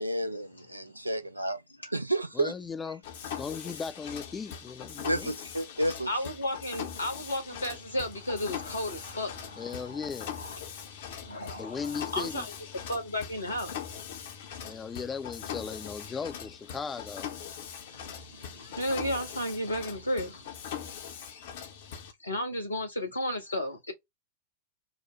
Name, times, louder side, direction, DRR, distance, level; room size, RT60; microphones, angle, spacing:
voice 1, 0.0-2.5 5.0-6.1, right 1 dB, 85° right, 0.5 m, -31 dB
voice 2, 2.3-3.0 3.4-5.3 9.6-10.4 11.6-12.5 14.6-17.3, left 5 dB, 20° left, 0.4 m, -37 dB
Mechanisms, 3.0-22.1, left 8 dB, 55° left, 0.8 m, -41 dB
voice 3, 6.1-10.6 11.2-12.4 12.9-13.8 17.9-20.5 22.2-23.9, left 1 dB, 80° left, 1.4 m, -34 dB
4.8 x 2.1 x 3.1 m
figure-of-eight pair, 90°, 0 cm